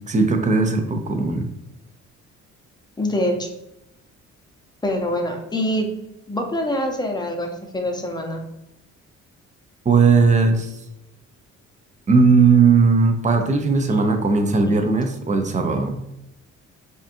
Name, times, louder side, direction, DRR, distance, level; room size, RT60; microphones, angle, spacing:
voice 1, 0.1-1.4 9.8-10.7 12.1-16.0, right 4 dB, 25° right, 5 dB, 0.6 m, -17 dB
voice 2, 3.0-3.5 4.8-5.9 6.3-8.4, left 1 dB, 15° left, 2 dB, 0.7 m, -24 dB
5.2 x 2.4 x 2.6 m, 0.86 s
cardioid pair, 90°, 30 cm